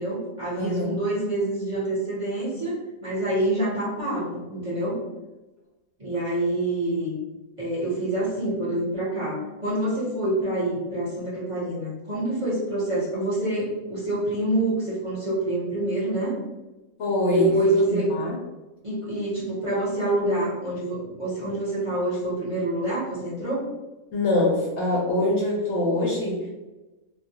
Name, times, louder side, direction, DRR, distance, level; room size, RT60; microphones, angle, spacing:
voice 1, 0.0-2.7 3.0-5.0 6.0-7.2 7.6-16.4 17.3-18.1 18.8-23.6, right 1 dB, 25° right, -9 dB, 0.9 m, -26 dB
voice 2, 0.6-0.9 17.0-17.5 17.9-18.4 24.1-26.5, left 1 dB, 65° left, -3 dB, 0.8 m, -24 dB
2.3 x 2.2 x 2.8 m, 1.1 s
omnidirectional pair, 1.4 m